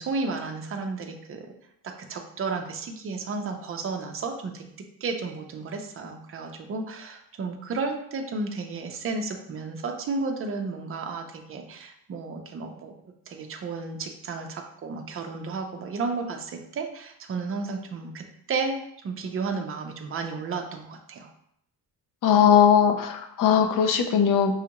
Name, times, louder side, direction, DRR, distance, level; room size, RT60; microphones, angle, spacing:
voice 1, 0.0-1.5 1.8-4.6 5.0-12.9 13.3-21.3, right 4 dB, 35° right, 4 dB, 0.5 m, -33 dB
voice 2, 22.2-24.5, left 8 dB, 60° left, 6 dB, 0.6 m, -19 dB
6.2 x 2.4 x 2.9 m, 0.74 s
cardioid pair, 155°, 37 cm